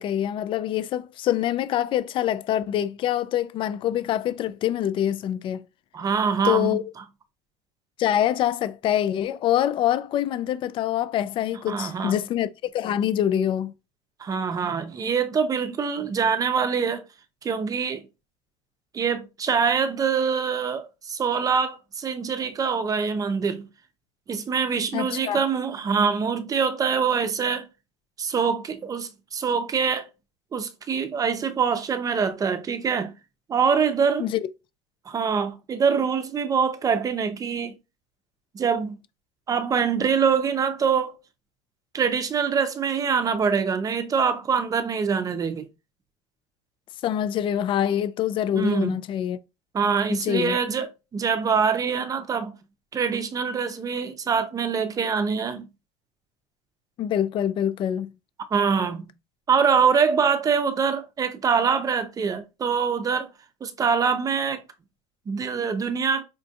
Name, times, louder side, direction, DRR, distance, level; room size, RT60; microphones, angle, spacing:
voice 1, 0.0-5.6 6.4-6.9 8.0-13.7 24.9-25.4 34.2-34.5 47.0-49.4 50.1-50.6 57.0-58.1, left 11 dB, 40° left, 0.4 m, -25 dB
voice 2, 5.9-6.8 11.7-12.2 14.2-17.0 17.4-18.0 18.9-23.7 24.3-27.6 28.2-30.1 30.5-33.1 33.5-34.3 35.1-37.7 38.5-39.0 39.5-41.2 41.9-45.7 48.5-49.0 49.7-52.5 52.9-55.7 58.5-59.1 59.5-63.3 63.6-64.6 65.3-66.2, right 6 dB, 30° right, 0.7 m, -24 dB
5.2 x 2.5 x 2.3 m
supercardioid pair, 100°, 13 cm